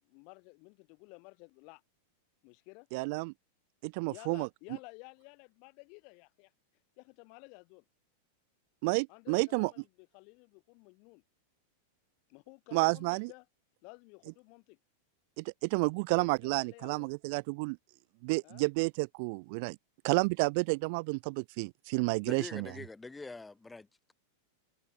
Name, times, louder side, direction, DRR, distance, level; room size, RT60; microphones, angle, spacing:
voice 1, 0.0-1.8 2.4-2.9 4.0-6.5 7.0-7.8 9.1-11.2 12.3-13.5 13.8-14.8 16.1-17.1 18.4-18.6, left 35 dB, 45° left, 4.3 m, -53 dB
voice 2, 2.9-3.3 3.8-4.5 8.8-9.7 12.7-13.3 15.4-17.8 18.2-19.8 20.0-22.7, right 30 dB, 50° right, 0.5 m, -30 dB
voice 3, 22.2-24.1, left 3 dB, 5° left, 0.7 m, -45 dB
supercardioid pair, 160°, 0 cm